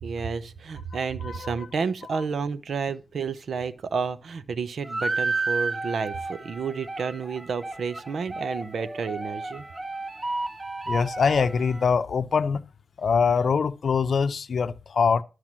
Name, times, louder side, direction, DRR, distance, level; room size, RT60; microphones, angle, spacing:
voice 1, 0.0-9.6, right 5 dB, 85° right, 0.7 m, -31 dB
voice 2, 1.2-1.7 10.9-12.6 13.0-15.2, left 5 dB, 75° left, 0.6 m, -23 dB
sound 1, 4.8-11.9, right 3 dB, 30° right, 0.9 m, -32 dB
12.5 x 4.8 x 7.3 m
wide cardioid pair, 100°, 0 cm